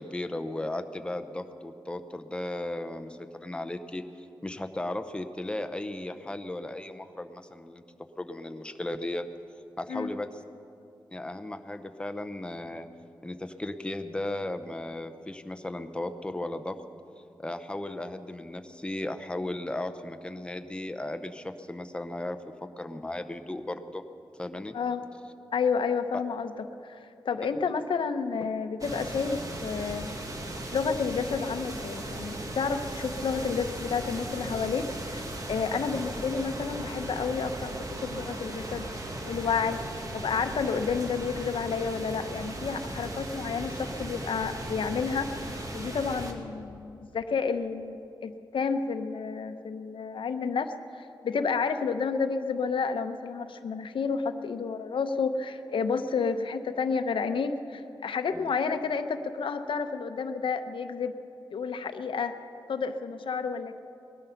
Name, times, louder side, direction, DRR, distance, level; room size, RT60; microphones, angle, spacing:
voice 1, 0.0-7.8 8.2-9.3 9.8-10.4 11.1-12.9 13.2-16.8 17.4-24.0 24.4-24.7 58.3-58.5, left 1 dB, 10° left, 9 dB, 0.6 m, -36 dB
voice 2, 25.5-26.5 26.8-27.0 27.2-30.1 30.7-37.7 38.0-38.8 39.3-39.8 40.1-61.2 61.5-62.3 62.7-63.8, left 5 dB, 80° left, 8 dB, 0.7 m, -30 dB
sound 1, 28.8-46.3, right 1 dB, 40° right, 1.4 m, -37 dB
20.0 x 12.5 x 5.8 m, 2.7 s
wide cardioid pair, 170°, 9 cm